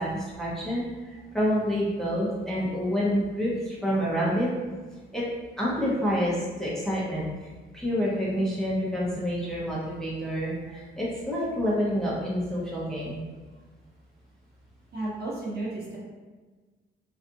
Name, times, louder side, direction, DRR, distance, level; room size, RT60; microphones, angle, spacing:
voice 1, 0.0-4.5 5.1-5.2 5.6-7.5 7.7-13.2, equal, ahead, -7 dB, 0.7 m, -28 dB
voice 2, 14.9-16.0, right 2 dB, 55° right, -6 dB, 0.9 m, -33 dB
2.6 x 2.3 x 2.5 m, 1.3 s
cardioid pair, 90°, 20 cm